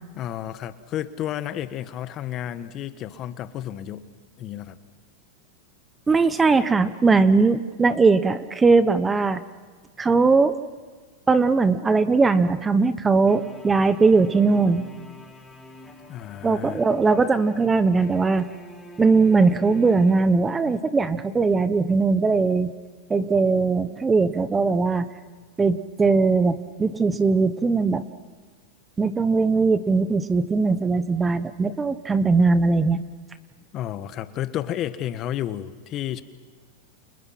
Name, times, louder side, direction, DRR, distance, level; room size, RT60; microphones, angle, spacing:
voice 1, 0.1-4.1 4.4-4.8 16.1-16.8 33.7-36.2, left 11 dB, 40° left, 11 dB, 1.5 m, -31 dB
voice 2, 6.1-9.4 10.0-10.6 11.3-14.9 16.4-18.5 19.0-22.7 23.1-25.1 25.6-28.0 29.0-33.0, right 4 dB, 15° right, 13 dB, 1.1 m, -20 dB
sound 1, 13.3-21.0, left 1 dB, 10° left, 3.3 m, -46 dB
29.5 x 28.5 x 6.0 m, 1.4 s
hypercardioid pair, 115°, 0 cm